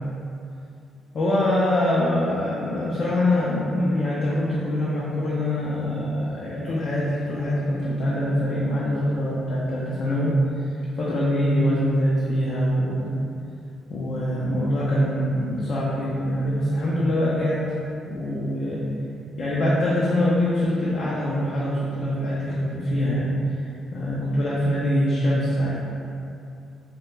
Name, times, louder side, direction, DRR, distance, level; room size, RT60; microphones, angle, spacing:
voice 1, 1.1-13.2 13.9-17.8 18.0-18.9 19.4-23.6 23.9-25.8, left 1 dB, 50° left, -7 dB, 0.4 m, -24 dB
2.4 x 2.2 x 3.0 m, 2.6 s
cardioid pair, 90°, 0 cm